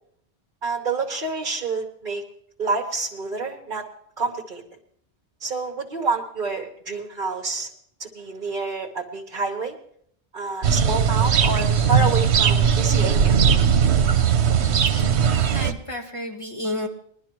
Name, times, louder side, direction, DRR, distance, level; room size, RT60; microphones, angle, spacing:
voice 1, 0.6-2.2 2.6-3.8 4.2-4.6 5.4-7.7 8.0-9.8 10.3-13.4, right 3 dB, 50° right, -1 dB, 1.3 m, -28 dB
sound 1, 10.6-15.7, right 7 dB, 80° right, 1.0 m, -19 dB
voice 2, 14.6-16.9, left 1 dB, 30° left, 0 dB, 2.0 m, -33 dB
21.5 x 11.5 x 3.0 m, 0.65 s
omnidirectional pair, 1.1 m